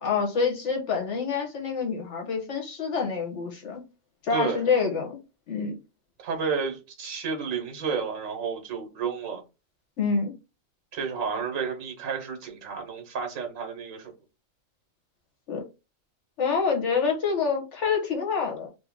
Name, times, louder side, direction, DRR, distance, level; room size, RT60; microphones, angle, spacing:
voice 1, 0.0-3.8 4.2-5.2 5.5-5.8 10.0-10.3 15.5-15.6 16.4-18.7, left 5 dB, 65° left, 1.2 m, -27 dB
voice 2, 4.3-4.7 6.2-9.4 10.9-14.1, right 5 dB, 80° right, 1.4 m, -31 dB
2.9 x 2.7 x 3.5 m
omnidirectional pair, 1.3 m